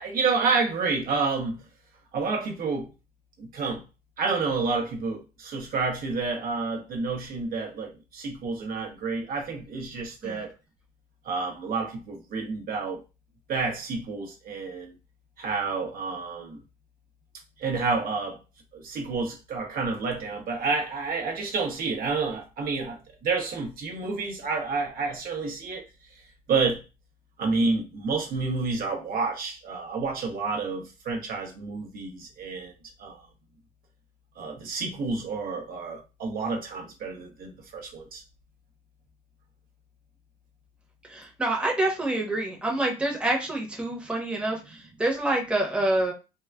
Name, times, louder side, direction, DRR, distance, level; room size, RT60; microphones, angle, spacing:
voice 1, 0.0-1.6 2.1-2.9 3.4-3.8 4.2-10.5 11.2-13.0 13.5-14.9 15.4-16.6 17.6-18.4 18.7-25.8 26.5-26.8 27.4-32.7 33.0-33.2 34.4-38.2, right 4 dB, 60° right, 0.8 m, -29 dB
voice 2, 41.1-46.1, right 1 dB, 5° right, 0.9 m, -27 dB
3.6 x 2.2 x 2.2 m
cardioid pair, 110°, 17 cm